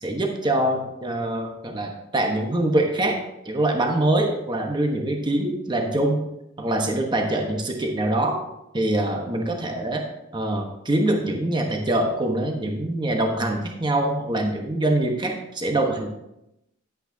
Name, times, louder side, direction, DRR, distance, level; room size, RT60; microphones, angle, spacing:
voice 1, 0.0-3.2 3.4-6.3 6.6-8.4 8.7-10.1 10.3-16.1, right 1 dB, 25° right, 2 dB, 1.1 m, -24 dB
10.5 x 8.9 x 2.7 m, 0.86 s
head